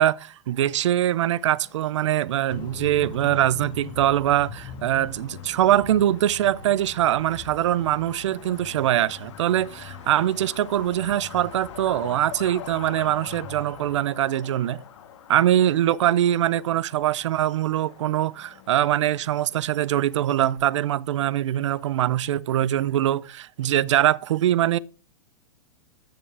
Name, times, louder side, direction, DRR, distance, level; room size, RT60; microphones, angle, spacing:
voice 1, 0.0-14.8 15.3-24.8, right 12 dB, 85° right, 0.5 m, -23 dB
Truck, 0.6-20.6, left 9 dB, 85° left, 1.6 m, -46 dB
sound 1, 2.5-14.0, left 7 dB, 35° left, 1.3 m, -43 dB
14.0 x 4.6 x 3.3 m
supercardioid pair, 155°, 15 cm